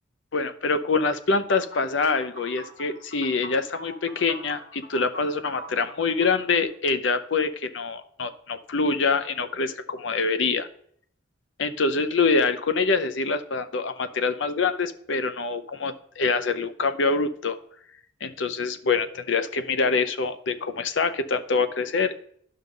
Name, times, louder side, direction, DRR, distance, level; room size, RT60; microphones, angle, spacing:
voice 1, 0.3-10.7 11.6-17.6 18.2-22.3, left 4 dB, 70° left, 11 dB, 0.7 m, -25 dB
sound 1, 1.5-6.6, equal, 90° left, 3.3 m, -43 dB
12.0 x 5.5 x 3.8 m, 0.64 s
head